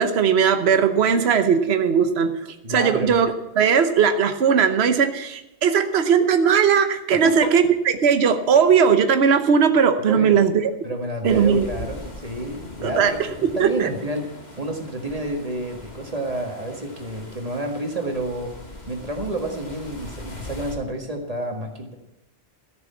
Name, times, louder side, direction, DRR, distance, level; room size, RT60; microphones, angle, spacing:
voice 1, 0.0-7.6 8.0-10.7 11.2-11.7 12.8-13.1 13.4-13.9, right 6 dB, 65° right, 8 dB, 1.2 m, -18 dB
voice 2, 2.6-3.2 7.1-7.5 10.0-10.4 10.8-18.5 18.9-21.9, right 1 dB, 35° right, 3 dB, 1.9 m, -30 dB
sound 1, 11.3-20.8, left 2 dB, 40° left, 2.2 m, -41 dB
13.5 x 6.8 x 8.5 m, 0.93 s
omnidirectional pair, 1.2 m